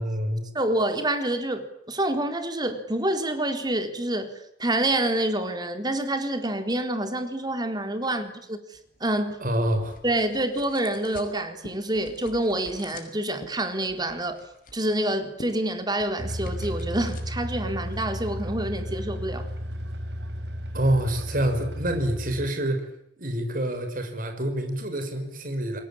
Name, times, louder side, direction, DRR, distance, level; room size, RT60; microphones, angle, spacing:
voice 1, 0.0-0.5 8.0-8.1 9.4-10.0 20.7-22.9 23.2-25.8, right 1 dB, 50° right, 5.9 m, -27 dB
voice 2, 0.5-4.3 4.6-8.6 9.0-9.4 10.0-14.4 14.7-19.5, right 1 dB, 25° right, 4.0 m, -27 dB
sound 1, 8.7-18.9, left 2 dB, 50° left, 6.0 m, -48 dB
sound 2, 16.2-22.5, equal, 75° right, 6.8 m, -33 dB
29.5 x 22.0 x 8.9 m
head